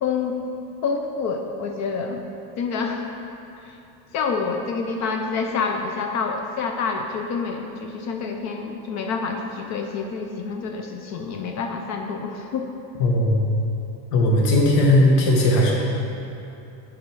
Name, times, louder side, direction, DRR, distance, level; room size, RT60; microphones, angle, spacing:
voice 1, 0.0-0.4 0.8-2.2 2.6-3.1 3.6-3.8 4.1-12.7, left 5 dB, 35° left, 4 dB, 0.5 m, -27 dB
voice 2, 13.0-13.4 14.1-15.7, left 1 dB, 70° left, -1 dB, 1.6 m, -17 dB
7.3 x 5.0 x 4.6 m, 2.8 s
supercardioid pair, 125°, 48 cm